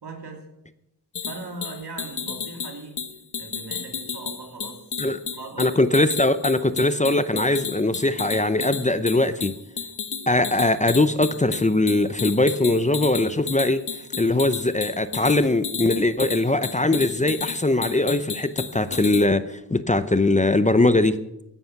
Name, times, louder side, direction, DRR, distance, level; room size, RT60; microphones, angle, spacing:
voice 1, 0.0-0.5 1.2-3.0 3.3-5.8 20.9-21.0, right 3 dB, 80° right, 3 dB, 3.0 m, -39 dB
sound 1, 1.1-19.3, left 6 dB, 75° left, 1.2 m, -33 dB
voice 2, 5.6-9.5 10.3-13.8 14.1-21.1, left 2 dB, 20° left, 12 dB, 0.7 m, -21 dB
15.5 x 11.0 x 5.9 m, 0.85 s
wide cardioid pair, 95°, 39 cm